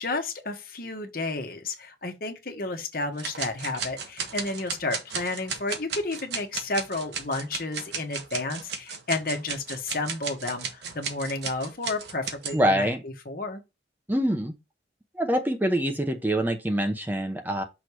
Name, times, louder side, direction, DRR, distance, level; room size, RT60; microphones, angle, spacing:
voice 1, 0.0-13.6, left 2 dB, 55° left, 1.4 m, -32 dB
sound 1, 3.2-12.6, right 6 dB, 75° right, 1.3 m, -34 dB
voice 2, 12.5-13.0 14.1-14.5 15.2-17.6, equal, 10° right, 0.8 m, -25 dB
6.2 x 3.3 x 4.7 m
head